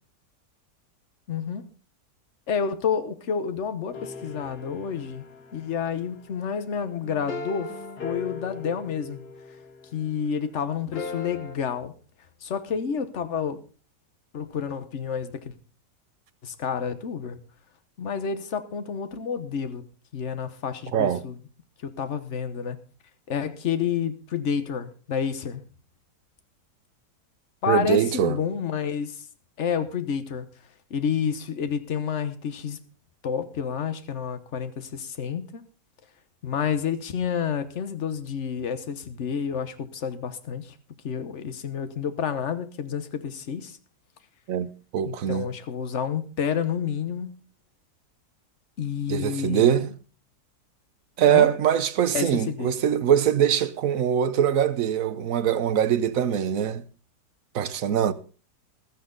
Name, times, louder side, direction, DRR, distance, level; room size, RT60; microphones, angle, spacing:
voice 1, 1.3-1.6 2.5-5.2 5.5-7.7 8.0-9.2 9.9-11.9 12.4-13.6 14.3-15.6 16.4-17.4 18.0-19.8 20.1-21.4 21.8-22.8 23.3-25.6 27.6-29.1 29.6-30.4 30.9-32.8 33.2-35.6 36.4-40.7 41.0-43.8 45.1-47.3 48.8-49.8 51.2-51.5 52.1-52.7, left 7 dB, 45° left, 1.3 m, -29 dB
sound 1, 3.9-10.2 10.9-11.6, left 3 dB, 65° left, 2.1 m, -39 dB
voice 2, 20.9-21.2 27.7-28.4 44.5-45.5 49.1-49.9 51.2-56.8 57.5-58.1, right 9 dB, 60° right, 1.1 m, -23 dB
15.0 x 13.0 x 3.9 m
omnidirectional pair, 1.8 m